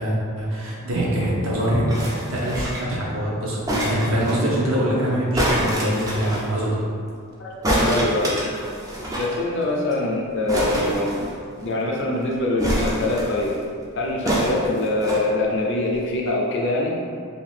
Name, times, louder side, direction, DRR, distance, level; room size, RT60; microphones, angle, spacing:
voice 1, 0.0-1.8 2.3-6.8, right 1 dB, 60° right, -6 dB, 0.7 m, -24 dB
sound 1, 1.9-3.0 3.7-4.4 5.3-6.5 7.6-9.3 9.6-9.7 9.9-10.1 10.5-11.7 12.6-13.5 14.3-15.2 16.0-16.1, equal, 15° right, 0.3 m, -25 dB
voice 2, 7.4-8.4 9.2-11.2 11.6-13.5 13.9-16.9, left 2 dB, 55° left, -2 dB, 0.4 m, -24 dB
2.8 x 2.3 x 3.2 m, 2.3 s
head